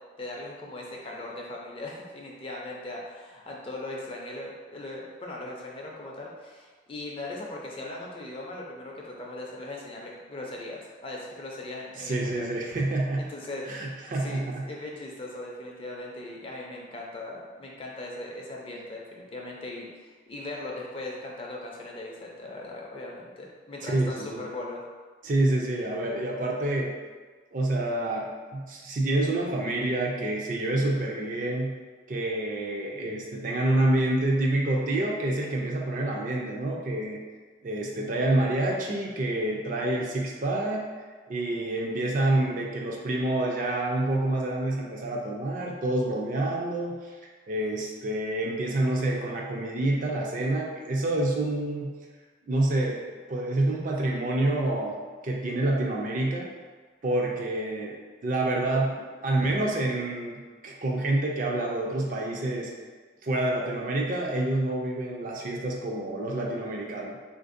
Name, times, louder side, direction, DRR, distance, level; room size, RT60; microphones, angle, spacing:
voice 1, 0.2-12.5 13.2-13.9 14.2-24.8, left 2 dB, 30° left, -2 dB, 0.4 m, -39 dB
voice 2, 12.0-13.3 13.6-14.6 23.8-24.5 25.2-26.9 27.5-31.7 32.1-37.2 37.6-40.9 41.3-47.2 47.5-51.9 52.5-53.0 53.3-55.0 55.2-56.5 57.0-58.0 58.2-62.7 63.2-67.2, right 1 dB, 45° right, -1 dB, 0.4 m, -27 dB
3.5 x 2.5 x 2.5 m, 1.5 s
head